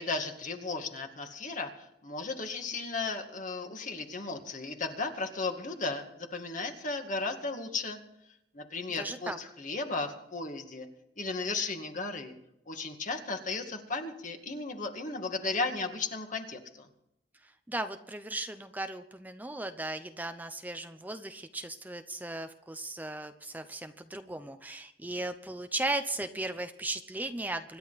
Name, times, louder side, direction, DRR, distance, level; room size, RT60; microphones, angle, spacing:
voice 1, 0.0-8.0 8.5-10.9 11.2-12.3 12.7-16.9, left 3 dB, 45° left, 4 dB, 2.1 m, -35 dB
voice 2, 9.0-9.4 17.7-27.8, right 2 dB, 10° right, 8 dB, 0.7 m, -36 dB
25.5 x 11.5 x 4.2 m, 0.81 s
head